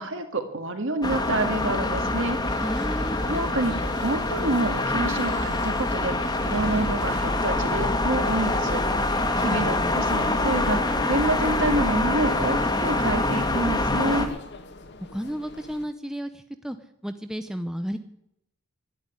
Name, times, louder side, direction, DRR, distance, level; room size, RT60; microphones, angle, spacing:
voice 1, 0.0-2.4 3.3-8.8 9.4-14.3, right 2 dB, 60° right, 7 dB, 1.9 m, -28 dB
sound 1, 1.0-14.3, left 2 dB, 20° left, 1.5 m, -25 dB
sound 2, 2.4-15.8, left 2 dB, 50° left, 1.3 m, -41 dB
voice 2, 2.6-3.2 9.4-10.0 15.0-16.8 17.0-18.0, equal, 5° right, 8 dB, 0.6 m, -33 dB
11.5 x 10.5 x 9.8 m, 0.79 s
head